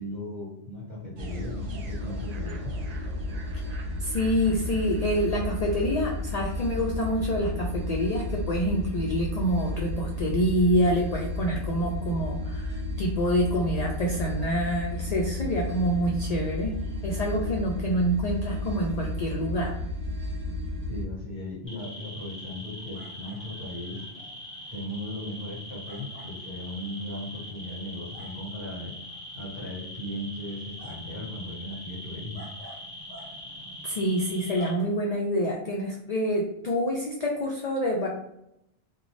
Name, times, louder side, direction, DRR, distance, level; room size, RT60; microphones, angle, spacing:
voice 1, 0.0-2.7 20.9-24.0 24.7-28.9 29.3-32.5, left 1 dB, 40° right, -6 dB, 1.3 m, -37 dB
sound 1, 1.2-21.1, left 1 dB, 70° right, 0.4 m, -33 dB
voice 2, 4.0-16.7 17.0-19.7 33.8-38.1, equal, 70° left, -1 dB, 0.3 m, -27 dB
sound 2, 21.7-34.7, left 1 dB, 10° left, 0.9 m, -42 dB
2.5 x 2.2 x 3.0 m, 0.80 s
omnidirectional pair, 1.2 m